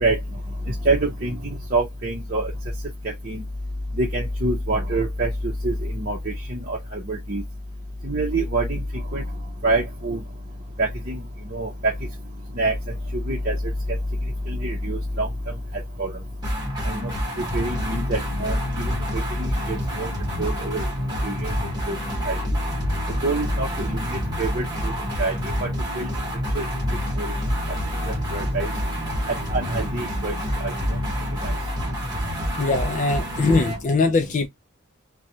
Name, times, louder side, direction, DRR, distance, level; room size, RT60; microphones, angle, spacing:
voice 1, 0.9-1.3 1.7-2.5 3.3-3.4 4.0-5.3 5.6-6.2 6.5-6.8 7.1-7.4 8.1-8.8 9.1-9.2 9.6-10.2 10.8-11.2 11.5-11.7 12.6-12.7 13.3-13.5 14.5-15.3 16.0-16.1 16.9-17.1 17.5-18.6 19.7-20.1 20.4-20.8 21.2-21.5 21.9-22.0 22.3-22.4 23.2-24.0 24.4-24.6 25.2-25.3 26.0-26.1 26.6-26.7 27.2-27.3 28.3-28.7 29.5-30.3, right 2 dB, 40° right, 0.7 m, -24 dB
sound 1, 16.4-33.8, equal, 20° right, 1.3 m, -28 dB
voice 2, 32.6-34.5, left 3 dB, 35° left, 0.3 m, -21 dB
3.0 x 2.2 x 2.6 m
head